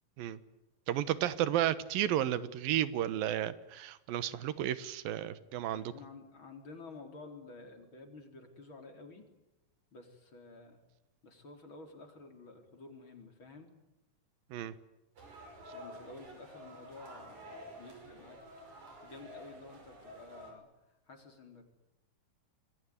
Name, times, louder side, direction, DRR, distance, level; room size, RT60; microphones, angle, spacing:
voice 1, 0.9-5.8 14.5-14.7, right 12 dB, 85° right, 15 dB, 3.0 m, -32 dB
voice 2, 5.7-9.3 9.9-10.8 11.2-13.7 15.7-18.4 19.0-21.6, left 3 dB, 35° left, 4 dB, 4.5 m, -51 dB
sound 1, 15.2-20.5, equal, 55° right, 7.1 m, -50 dB
26.5 x 22.5 x 9.8 m, 0.92 s
omnidirectional pair, 4.0 m